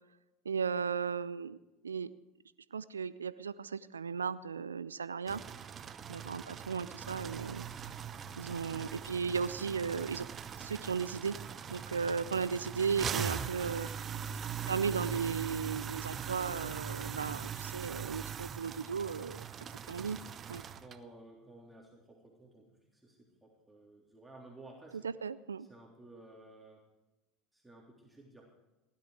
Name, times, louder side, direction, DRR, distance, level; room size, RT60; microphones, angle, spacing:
voice 1, 0.5-1.6 1.8-2.1 2.7-5.4 6.1-7.6 8.4-10.3 10.6-11.4 11.7-13.9 14.7-19.4 19.9-20.2 20.5-20.6 25.0-25.7, right 6 dB, 85° right, 17 dB, 0.4 m, -35 dB
sound 1, 5.3-21.0, right 8 dB, 35° right, 0.8 m, -41 dB
voice 2, 20.8-25.1 25.6-26.8 27.5-28.5, right 2 dB, 5° right, -2 dB, 3.4 m, -55 dB
17.0 x 12.0 x 4.9 m, 1.0 s
figure-of-eight pair, 75°, 0 cm